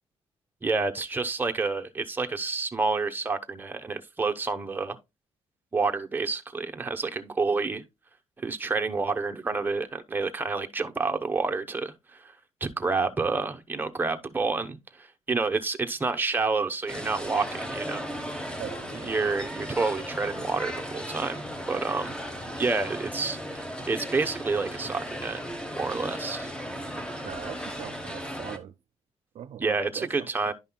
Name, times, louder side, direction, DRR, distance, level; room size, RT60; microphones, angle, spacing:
voice 1, 0.6-5.0 5.7-7.8 8.4-12.3 12.6-18.0 19.0-22.2 22.6-25.4 25.8-26.5 29.6-30.5, right 4 dB, 15° right, 0.8 m, -29 dB
sound 1, 16.9-28.6, equal, 10° left, 0.9 m, -36 dB
voice 2, 18.6-19.2 27.2-28.7 29.3-30.5, right 10 dB, 65° right, 0.5 m, -41 dB
10.5 x 5.4 x 2.2 m
cardioid pair, 115°, 11 cm